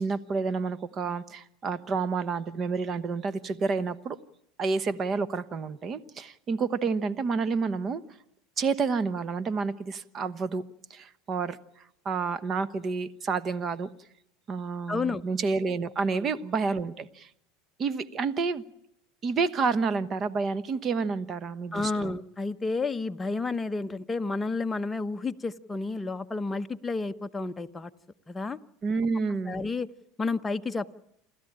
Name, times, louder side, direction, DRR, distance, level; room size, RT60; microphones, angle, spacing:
voice 1, 0.0-4.2 4.6-8.0 8.6-10.6 10.9-11.6 12.0-13.9 14.5-17.3 17.8-18.6 19.2-22.2 28.8-29.6, right 4 dB, 35° right, 14 dB, 1.1 m, -29 dB
voice 2, 14.9-15.2 16.1-16.3 21.7-27.9 28.3-28.6 29.5-29.9 30.2-30.9, left 3 dB, 15° left, 8 dB, 0.9 m, -31 dB
29.0 x 13.0 x 8.7 m, 0.81 s
supercardioid pair, 115°, 0 cm